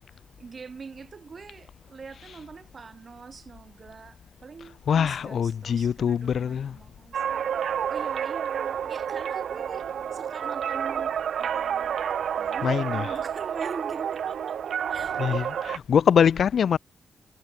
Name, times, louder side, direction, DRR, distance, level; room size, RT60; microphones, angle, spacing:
voice 1, 0.4-7.2 7.9-9.9 10.1-12.0 12.4-14.6 14.9-15.6, right 5 dB, 40° right, 3.8 m, -43 dB
voice 2, 4.9-6.8 12.6-13.2 15.2-16.8, left 7 dB, 65° left, 0.6 m, -23 dB
sound 1, 7.1-15.8, right 8 dB, 80° right, 0.7 m, -29 dB
wide cardioid pair, 160°, 0 cm